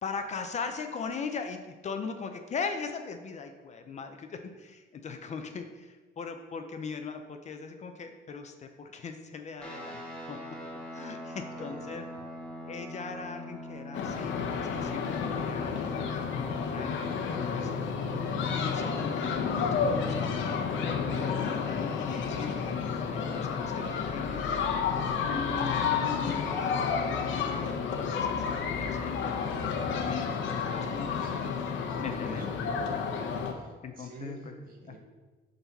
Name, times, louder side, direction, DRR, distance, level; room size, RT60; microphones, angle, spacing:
voice 1, 0.0-10.0 10.3-10.4 10.9-12.0 12.7-17.7 18.5-24.4 25.2-27.7 28.1-31.4 32.0-32.5 33.8-34.5 34.8-35.0, left 5 dB, 35° left, 6 dB, 0.5 m, -40 dB
sound 1, 9.6-21.3, left 1 dB, 5° left, 1.5 m, -44 dB
voice 2, 11.6-12.0 30.7-31.4 31.9-33.0 33.5-35.0, right 1 dB, 45° right, 1 dB, 1.4 m, -46 dB
sound 2, 13.9-33.5, left 6 dB, 75° left, 0.8 m, -31 dB
10.5 x 4.0 x 4.1 m, 1.3 s
cardioid pair, 160°, 20 cm